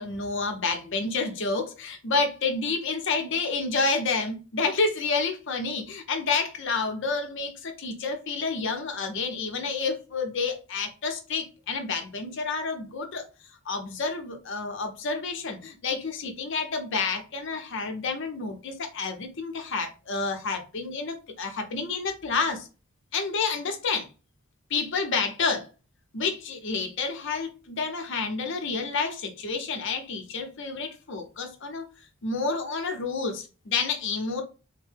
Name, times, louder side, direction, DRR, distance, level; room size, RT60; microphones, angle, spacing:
voice 1, 0.0-13.3 13.6-22.7 23.1-24.1 24.7-25.7 26.1-31.8 32.2-34.4, left 4 dB, 65° left, 0.8 m, -29 dB
3.6 x 2.2 x 3.3 m
head